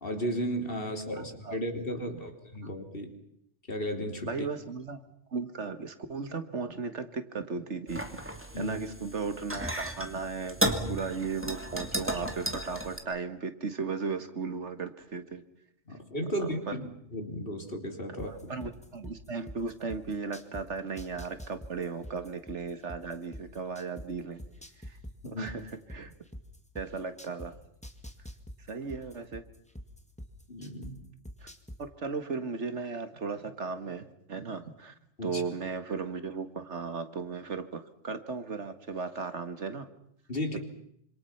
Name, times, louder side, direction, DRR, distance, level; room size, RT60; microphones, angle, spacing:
voice 1, 0.0-3.1 3.7-4.3 8.5-8.8 15.9-18.5 25.2-25.5 30.5-31.0 35.2-35.4 40.3-40.6, equal, 50° left, 5 dB, 3.5 m, -34 dB
voice 2, 1.2-1.6 2.0-2.1 4.3-5.0 5.3-15.4 16.7-16.8 18.3-24.4 25.2-25.6 25.9-26.1 26.8-27.6 28.7-29.4 31.4-31.5 31.8-34.9 35.2-39.9, right 4 dB, 70° right, 9 dB, 2.0 m, -36 dB
sound 1, 7.9-13.0, right 1 dB, 10° right, 2.4 m, -34 dB
sound 2, 18.2-20.6 21.0-24.1 24.4-27.5 27.8-30.9 31.2-31.8, equal, 5° left, 2.0 m, -43 dB
26.5 x 26.5 x 5.8 m, 0.73 s
omnidirectional pair, 1.2 m